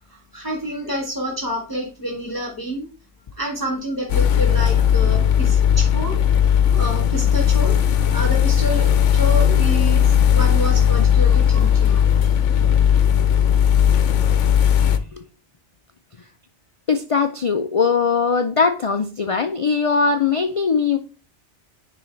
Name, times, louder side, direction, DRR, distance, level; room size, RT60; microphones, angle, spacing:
voice 1, 0.1-2.9 3.4-6.2 6.7-7.8 8.1-12.1, equal, 20° left, -1 dB, 1.2 m, -28 dB
sound 1, 4.1-15.0, left 9 dB, 90° left, 1.0 m, -17 dB
voice 2, 14.8-15.2 16.9-21.0, left 5 dB, 60° left, 7 dB, 0.3 m, -20 dB
10.0 x 3.8 x 3.2 m, 0.35 s
omnidirectional pair, 1.2 m